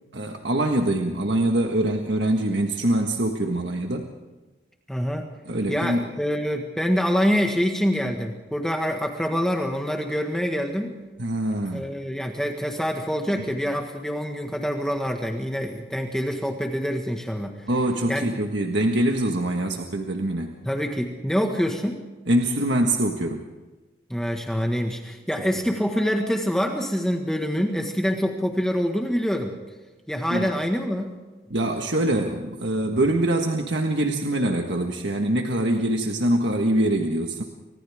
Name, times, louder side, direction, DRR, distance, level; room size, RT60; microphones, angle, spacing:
voice 1, 0.1-4.1 5.5-6.0 11.2-11.8 13.3-13.4 17.7-20.6 22.3-23.5 30.3-30.5 31.5-37.4, right 1 dB, 75° right, 3 dB, 1.6 m, -24 dB
voice 2, 4.9-5.3 5.7-10.9 11.7-17.5 18.1-18.3 20.6-22.0 24.1-29.5 30.1-31.1, equal, 5° left, 2 dB, 1.6 m, -25 dB
30.0 x 25.5 x 3.6 m, 1.2 s
head